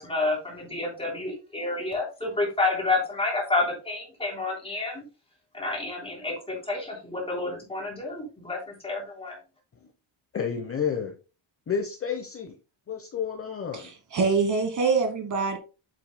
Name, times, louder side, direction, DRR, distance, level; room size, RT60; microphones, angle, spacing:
voice 1, 0.0-5.0 5.5-9.4, left 3 dB, 10° left, -2 dB, 3.5 m, -29 dB
voice 2, 10.3-11.1 11.7-12.6 12.9-13.9, left 7 dB, 30° left, 4 dB, 0.9 m, -30 dB
voice 3, 13.7-15.6, right 4 dB, 40° right, 5 dB, 1.4 m, -25 dB
9.2 x 7.7 x 2.2 m, 0.32 s
cardioid pair, 175°, 46 cm